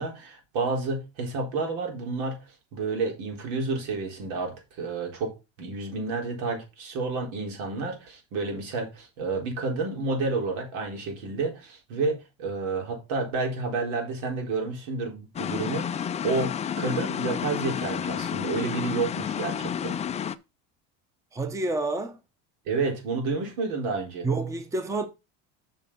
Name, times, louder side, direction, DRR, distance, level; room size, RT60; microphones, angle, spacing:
voice 1, 0.0-20.0 22.7-24.3, right 3 dB, 80° right, 4.1 m, -30 dB
sound 1, 15.4-20.4, left 8 dB, 20° left, 0.4 m, -30 dB
voice 2, 21.3-22.2 24.2-25.1, right 3 dB, 10° right, 0.8 m, -28 dB
7.4 x 5.3 x 5.5 m
cardioid pair, 140°, 36 cm